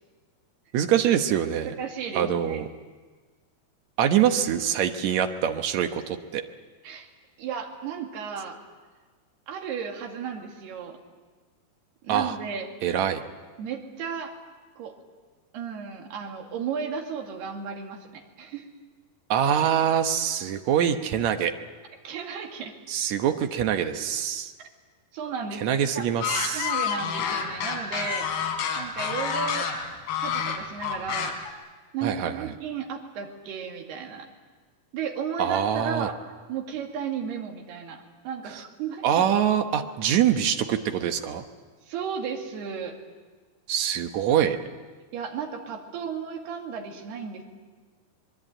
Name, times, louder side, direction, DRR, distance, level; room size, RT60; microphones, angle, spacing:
voice 1, 0.7-1.7 2.2-2.7 4.0-6.4 12.1-12.4 12.8-13.2 19.3-21.5 22.9-24.5 25.6-26.7 32.0-32.5 35.4-36.1 38.5-38.6 39.0-41.4 43.7-44.6, right 9 dB, 65° right, 7 dB, 1.9 m, -24 dB
voice 2, 1.8-2.7 6.8-7.1 7.4-8.6 9.5-11.0 12.0-12.7 13.6-14.3 14.8-14.9 15.5-18.7 22.0-22.8 24.6-24.7 25.1-26.1 26.5-29.7 30.2-31.4 31.9-34.3 34.9-36.2 36.5-39.3 41.8-43.0 45.1-47.4, right 6 dB, 85° right, 3 dB, 4.3 m, -34 dB
sound 1, 26.2-31.5, left 7 dB, 80° left, 4.3 m, -28 dB
24.5 x 22.5 x 9.0 m, 1.4 s
omnidirectional pair, 4.5 m